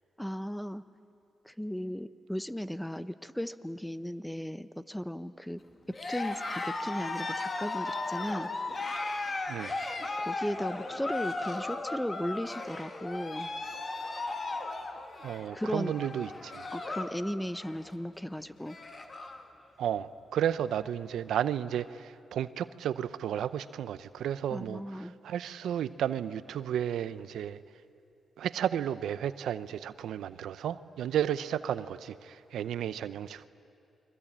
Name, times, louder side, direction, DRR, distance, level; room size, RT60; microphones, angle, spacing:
voice 1, 0.2-0.8 1.4-5.6 5.9-8.5 10.2-13.5 15.5-15.9 16.7-18.8 24.5-25.1, equal, 5° left, 13 dB, 1.0 m, -36 dB
Cheering, 5.9-17.2 17.5-17.9 18.3-18.4 18.6-19.4, left 3 dB, 40° left, 2.4 m, -36 dB
voice 2, 9.5-9.8 15.2-16.6 19.8-27.6 28.4-33.5, right 10 dB, 85° right, 14 dB, 0.6 m, -33 dB
29.5 x 22.5 x 8.7 m, 2.6 s
cardioid pair, 60°, 0 cm